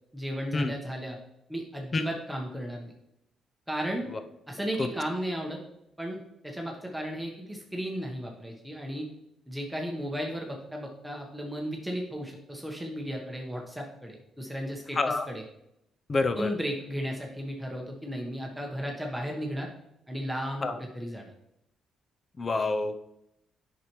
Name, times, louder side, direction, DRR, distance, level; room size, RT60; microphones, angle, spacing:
voice 1, 0.1-1.2 1.5-2.9 3.7-4.1 4.5-5.6 6.0-9.1 9.5-15.0 15.3-15.4 16.4-19.7 20.1-20.6 20.9-21.3, equal, 5° right, 0 dB, 1.1 m, -34 dB
voice 2, 15.0-15.3 16.1-16.5 20.6-20.8 22.4-23.0, left 3 dB, 35° left, 8 dB, 0.6 m, -27 dB
8.3 x 5.8 x 3.1 m, 0.83 s
cardioid pair, 90°, 0 cm